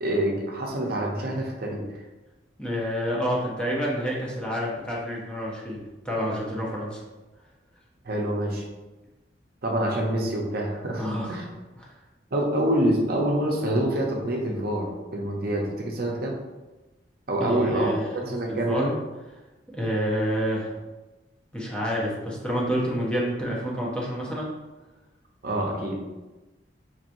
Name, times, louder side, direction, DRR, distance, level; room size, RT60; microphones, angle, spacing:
voice 1, 0.0-1.8 8.0-8.6 9.6-11.5 12.3-16.3 17.3-17.9 18.3-18.9 25.4-26.1, right 1 dB, 55° right, -1 dB, 0.7 m, -26 dB
voice 2, 2.6-7.0 10.9-11.4 11.8-11.9 17.4-19.0 19.7-20.7 21.5-24.5, equal, 5° left, -5 dB, 0.8 m, -28 dB
4.5 x 3.0 x 2.6 m, 1.1 s
head